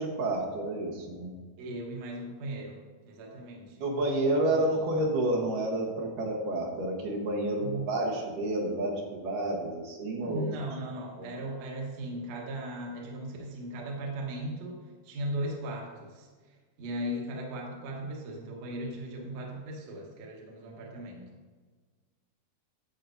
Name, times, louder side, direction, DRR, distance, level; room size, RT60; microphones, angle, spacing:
voice 1, 0.0-1.3 3.8-10.5 11.2-11.3, right 1 dB, 80° right, -2 dB, 2.8 m, -30 dB
voice 2, 1.6-3.8 4.5-4.9 7.6-7.8 10.2-14.8 15.0-21.2, right 1 dB, 60° right, -1 dB, 2.1 m, -38 dB
11.0 x 7.2 x 2.6 m, 1.4 s
omnidirectional pair, 3.8 m